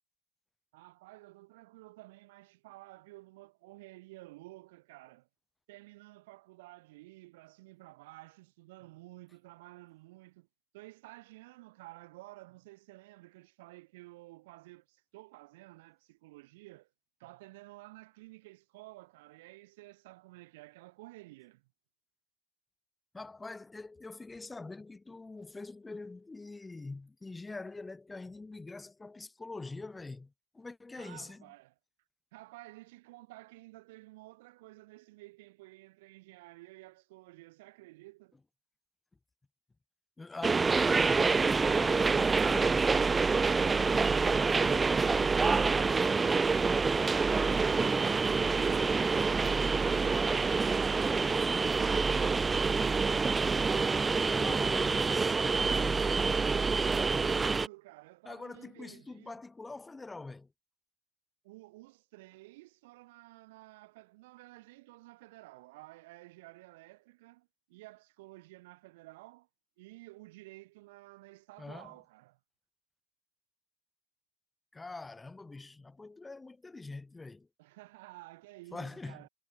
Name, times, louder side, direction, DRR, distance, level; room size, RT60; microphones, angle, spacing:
voice 1, 0.7-5.3 5.7-10.5 10.7-16.9 17.2-21.7 31.0-31.8 32.3-38.4 57.1-59.4 61.4-69.5 69.8-72.4 77.6-79.3, right 20 dB, 70° right, 5.7 m, -53 dB
voice 2, 23.1-31.4 40.2-43.0 54.3-56.1 58.3-60.5 71.6-71.9 74.7-77.5 78.7-79.2, left 3 dB, 15° left, 5.2 m, -44 dB
sound 1, 40.4-57.7, right 4 dB, 20° right, 0.5 m, -27 dB
hypercardioid pair, 95°, 0 cm